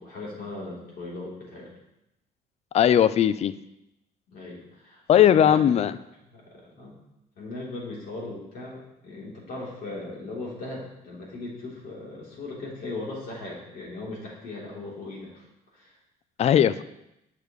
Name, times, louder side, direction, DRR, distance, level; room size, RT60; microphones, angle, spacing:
voice 1, 0.0-1.7 4.3-5.8 6.3-7.0 7.4-15.5 15.7-15.9, left 2 dB, 60° left, -4 dB, 3.4 m, -38 dB
voice 2, 2.7-3.5 5.1-5.9 16.4-16.8, left 10 dB, 40° left, 15 dB, 0.4 m, -18 dB
10.5 x 6.7 x 3.2 m, 0.87 s
cardioid pair, 110°, 17 cm